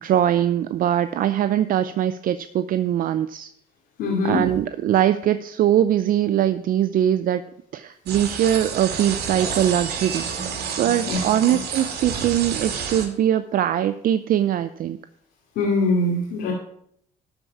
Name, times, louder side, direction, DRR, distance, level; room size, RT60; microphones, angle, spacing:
voice 1, 0.0-3.5 4.2-7.4 7.7-15.0, right 11 dB, 55° right, 12 dB, 0.5 m, -22 dB
voice 2, 4.0-4.4 11.1-11.6 15.6-16.5, left 2 dB, 75° left, -3 dB, 2.8 m, -23 dB
sound 1, 8.1-13.1, right 6 dB, 70° right, 2.4 m, -29 dB
12.5 x 4.9 x 7.1 m, 0.69 s
cardioid pair, 110°, 17 cm